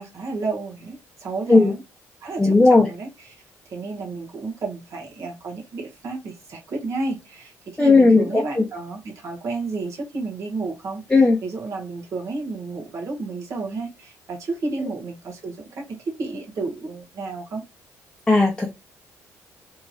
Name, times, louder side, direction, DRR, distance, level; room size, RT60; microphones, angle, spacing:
voice 1, 0.0-1.8 2.2-3.1 3.7-17.6, right 3 dB, 55° right, 1.7 m, -31 dB
voice 2, 2.4-2.9 7.8-8.7 11.1-11.4 18.3-18.7, left 3 dB, 10° left, 0.7 m, -15 dB
3.6 x 3.1 x 2.5 m
cardioid pair, 90°, 6 cm